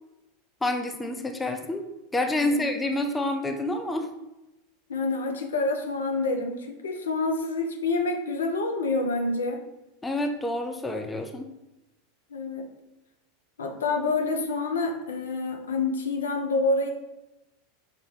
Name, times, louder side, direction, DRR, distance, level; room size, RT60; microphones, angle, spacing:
voice 1, 0.6-1.8 2.1-4.1 10.0-11.5, left 1 dB, 10° left, 5 dB, 0.4 m, -28 dB
voice 2, 4.9-9.6 12.3-12.7 13.6-16.9, left 3 dB, 75° left, 3 dB, 0.5 m, -27 dB
5.6 x 2.2 x 3.2 m, 0.96 s
figure-of-eight pair, 85°, 0 cm